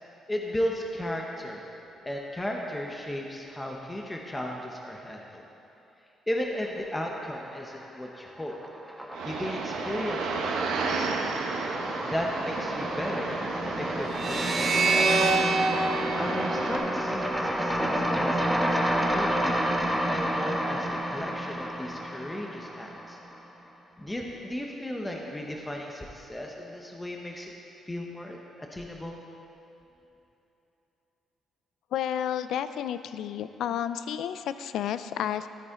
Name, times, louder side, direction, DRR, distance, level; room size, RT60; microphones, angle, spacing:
voice 1, 0.3-1.6 2.0-5.4 6.3-8.5 9.2-10.5 10.8-11.3 12.0-15.0 16.2-19.6 20.1-23.2 24.0-27.5 27.9-28.4 28.7-29.2, left 1 dB, 15° left, 0 dB, 1.0 m, -35 dB
sound 1, 7.1-7.9 8.2-23.3, equal, 5° right, 1.2 m, -30 dB
sound 2, 9.1-16.8, right 4 dB, 85° right, 0.9 m, -33 dB
sound 3, 14.1-17.4, right 3 dB, 50° right, 1.5 m, -26 dB
voice 2, 31.9-35.5, left 10 dB, 80° left, 12 dB, 0.4 m, -31 dB
13.5 x 9.1 x 3.8 m, 3.0 s
cardioid pair, 90°, 0 cm